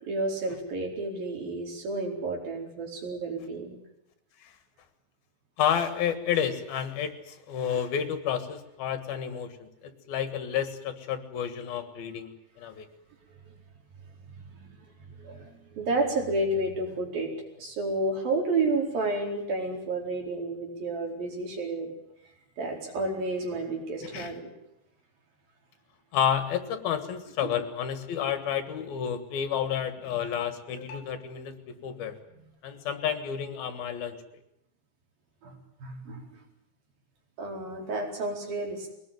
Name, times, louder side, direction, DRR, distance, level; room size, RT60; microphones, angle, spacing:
voice 1, 0.0-3.8 13.3-13.6 14.3-17.3 17.6-21.9 22.6-24.5 27.4-27.5 35.4-36.2 37.4-38.9, right 2 dB, 65° right, 1 dB, 6.3 m, -31 dB
voice 2, 5.6-12.9 24.1-24.3 26.1-32.2 32.6-34.1, left 8 dB, 70° left, 10 dB, 3.4 m, -30 dB
22.0 x 19.5 x 9.3 m, 0.83 s
omnidirectional pair, 4.5 m